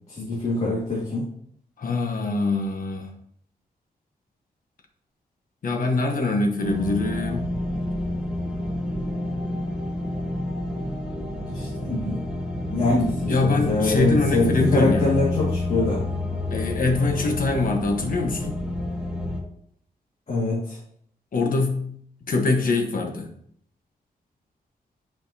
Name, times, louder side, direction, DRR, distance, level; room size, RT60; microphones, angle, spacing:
voice 1, 0.1-1.3 11.5-12.2 12.7-16.0 20.3-20.8, left 2 dB, 45° left, -6 dB, 1.9 m, -24 dB
voice 2, 1.8-3.1 5.6-7.5 13.3-15.1 16.5-18.6 21.3-21.9 22.2-23.3, left 3 dB, 60° left, 2 dB, 1.2 m, -24 dB
sound 1, 6.6-19.4, left 1 dB, 5° right, 1.3 m, -29 dB
9.0 x 5.2 x 2.8 m, 0.67 s
wide cardioid pair, 135°, 16 cm